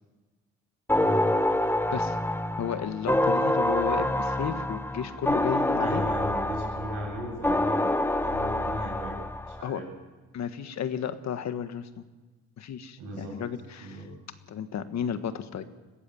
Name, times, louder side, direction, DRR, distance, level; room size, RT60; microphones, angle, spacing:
sound 1, 0.9-9.6, left 1 dB, 5° left, 0.8 m, -27 dB
voice 1, 1.0-1.3 5.8-9.2 9.5-9.8 13.0-13.4 13.8-14.0, equal, 90° right, 0 dB, 7.9 m, -36 dB
voice 2, 2.6-6.0 9.6-9.8 10.3-12.0 12.6-14.0 14.5-15.6, left 8 dB, 65° left, 10 dB, 1.5 m, -33 dB
22.0 x 15.0 x 9.0 m, 1.2 s
cardioid pair, 90°, 30 cm